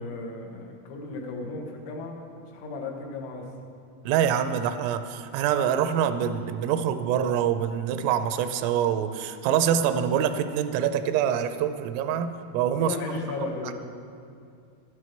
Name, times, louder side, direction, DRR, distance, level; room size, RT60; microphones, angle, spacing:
voice 1, 0.0-3.5 12.8-13.7, left 3 dB, 85° left, 1 dB, 3.9 m, -35 dB
voice 2, 4.1-13.0, right 9 dB, 90° right, 10 dB, 3.2 m, -25 dB
12.5 x 10.5 x 4.4 m, 2.4 s
omnidirectional pair, 5.8 m